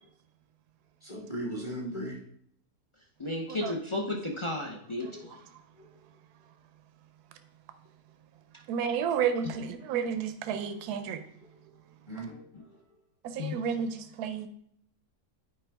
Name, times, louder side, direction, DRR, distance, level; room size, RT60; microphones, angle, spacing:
voice 1, 1.0-2.2 5.0-5.4 5.8-5.9 12.1-12.4, right 1 dB, 20° left, 1.1 m, -37 dB
voice 2, 3.2-5.1 13.4-13.5, left 2 dB, 35° left, 0.4 m, -33 dB
voice 3, 8.7-11.2 13.3-14.5, right 7 dB, 75° right, 1.1 m, -31 dB
8.9 x 4.6 x 3.4 m
omnidirectional pair, 1.7 m